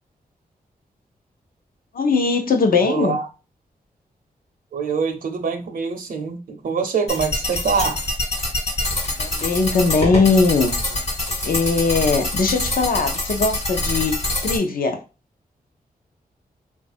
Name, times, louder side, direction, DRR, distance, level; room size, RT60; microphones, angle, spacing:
voice 1, 1.9-3.2 9.2-11.0 11.4-15.0, left 4 dB, 70° left, 0.7 m, -20 dB
voice 2, 2.8-3.2 4.7-8.0, right 5 dB, 65° right, 0.6 m, -24 dB
sound 1, 7.1-14.6, left 1 dB, 40° left, 1.2 m, -25 dB
3.6 x 2.4 x 4.0 m
wide cardioid pair, 155°, 16 cm